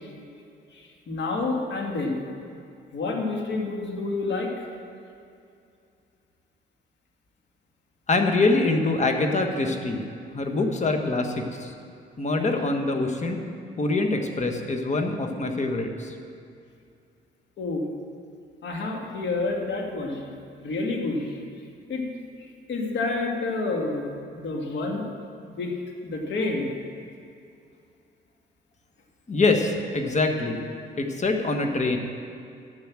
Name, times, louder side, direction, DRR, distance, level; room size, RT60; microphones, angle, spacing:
voice 1, 0.7-2.2 2.9-4.6 17.6-17.8 18.6-20.2 20.6-21.4 21.9-22.1 22.7-25.0 25.4-25.7 26.0-26.7, left 3 dB, 65° left, 1 dB, 2.0 m, -29 dB
voice 2, 8.1-10.1 10.3-11.7 12.2-13.4 13.8-16.1 29.3-30.6 31.0-32.0, left 3 dB, 35° left, 4 dB, 1.4 m, -24 dB
10.5 x 7.2 x 7.5 m, 2.5 s
cardioid pair, 90°, 20 cm